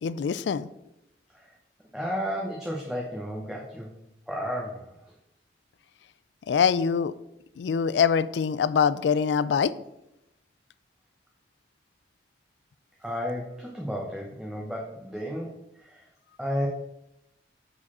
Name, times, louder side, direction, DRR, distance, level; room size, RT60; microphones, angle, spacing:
voice 1, 0.0-0.7 6.5-7.1 7.6-9.7, left 6 dB, 80° left, 17 dB, 0.3 m, -24 dB
voice 2, 1.9-3.9 4.3-4.9 13.0-16.1 16.4-16.7, equal, 5° right, -3 dB, 0.8 m, -33 dB
6.6 x 4.9 x 4.2 m, 0.85 s
head